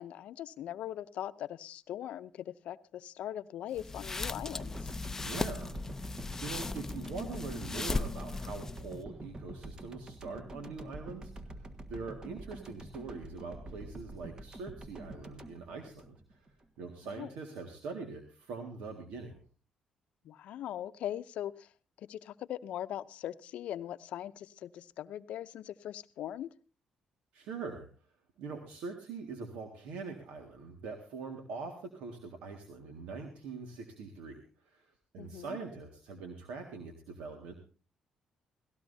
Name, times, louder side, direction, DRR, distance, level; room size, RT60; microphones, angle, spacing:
voice 1, 0.0-4.9 17.0-17.3 20.2-21.7 22.0-26.5 35.2-35.6, left 11 dB, 75° left, 13 dB, 0.6 m, -40 dB
sound 1, 3.7-9.0, left 3 dB, 20° left, 0.5 m, -37 dB
sound 2, 4.4-16.6 16.9-17.1, right 1 dB, 35° right, 1.5 m, -47 dB
voice 2, 5.2-5.8 6.4-19.4 27.3-27.9 28.4-37.5, right 4 dB, 90° right, 4 dB, 1.9 m, -43 dB
18.0 x 16.5 x 2.7 m, 0.37 s
cardioid pair, 85°, 2 cm